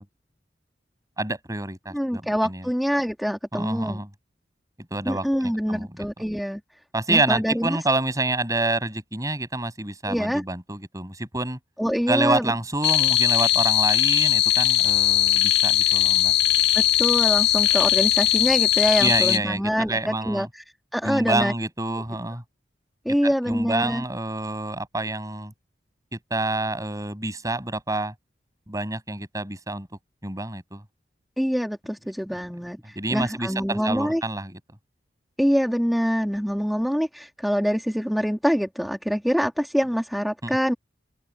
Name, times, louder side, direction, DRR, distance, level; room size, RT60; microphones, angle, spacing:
voice 1, 1.2-2.7 3.5-4.1 4.9-6.1 6.9-11.6 12.1-16.3 19.0-20.5 21.0-22.4 23.2-25.5 26.1-28.1 28.7-29.9 30.2-30.8 32.3-32.4 32.9-34.6 40.4-40.6, right 2 dB, 20° right, 6.4 m, -28 dB
voice 2, 1.9-4.0 5.0-6.6 7.1-7.8 10.1-10.4 11.8-12.5 16.7-20.6 20.9-21.5 23.0-24.0 31.4-34.2 35.4-40.7, equal, ahead, 1.6 m, -25 dB
sound 1, 12.8-19.4, left 13 dB, 65° left, 1.7 m, -20 dB
open air
head